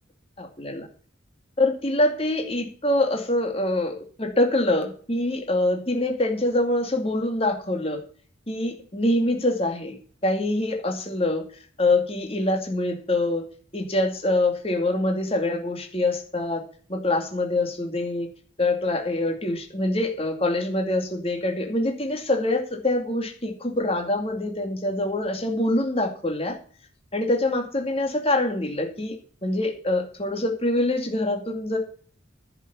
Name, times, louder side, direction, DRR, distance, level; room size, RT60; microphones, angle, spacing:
voice 1, 0.4-0.9 1.6-8.0 8.5-10.0 10.2-11.5 11.8-13.5 13.7-16.6 16.9-18.3 18.6-26.6 27.1-29.2 29.4-31.8, left 1 dB, 30° left, 3 dB, 2.4 m, -25 dB
10.5 x 7.4 x 6.9 m, 0.43 s
head